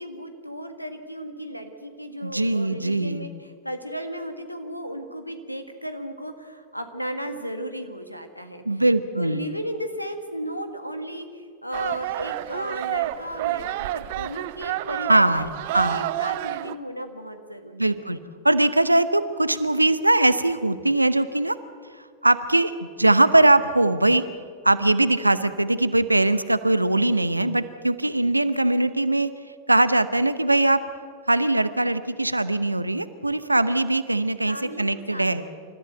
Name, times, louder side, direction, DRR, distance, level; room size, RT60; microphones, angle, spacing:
voice 1, 0.0-8.6 9.2-15.5 15.9-17.9 34.4-35.5, equal, 90° left, 8 dB, 1.7 m, -34 dB
voice 2, 2.2-3.3 8.6-9.4 15.1-15.5 15.7-16.1 17.7-18.2 18.4-21.6 22.2-24.2 24.6-29.3 29.7-30.8 31.3-35.4, right 2 dB, 85° right, 14 dB, 0.9 m, -21 dB
sound 1, 11.7-16.7, right 15 dB, 50° right, 0.6 m, -29 dB
28.0 x 14.0 x 8.0 m, 2.2 s
figure-of-eight pair, 90°, 0 cm